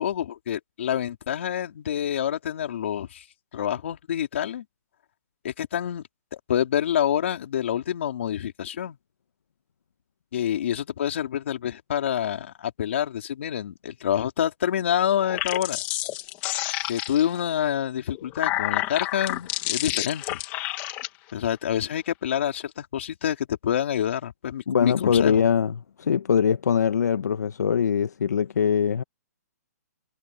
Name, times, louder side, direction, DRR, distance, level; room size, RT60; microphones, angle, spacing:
voice 1, 0.0-3.2 3.5-4.6 5.4-6.0 6.5-9.0 10.3-15.8 16.9-20.4 21.3-25.4, left 10 dB, 45° left, 3.9 m, -27 dB
sound 1, 15.2-17.4 18.1-21.1, left 17 dB, 20° left, 1.6 m, -29 dB
voice 2, 24.7-29.0, left 7 dB, 70° left, 1.0 m, -22 dB
hypercardioid pair, 175°, 9 cm